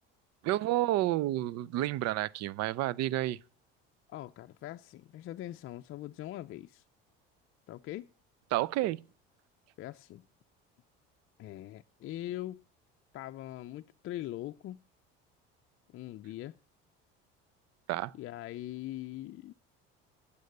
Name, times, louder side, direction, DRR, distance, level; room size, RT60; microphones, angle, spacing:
voice 1, 0.4-3.4 8.5-9.0 17.9-18.1, right 15 dB, 60° right, 0.6 m, -30 dB
voice 2, 4.1-6.8 7.7-8.1 9.8-10.2 11.4-12.6 13.1-14.8 15.9-16.6 18.1-19.5, left 14 dB, 45° left, 0.5 m, -42 dB
9.3 x 8.4 x 6.5 m
supercardioid pair, 90°, 29 cm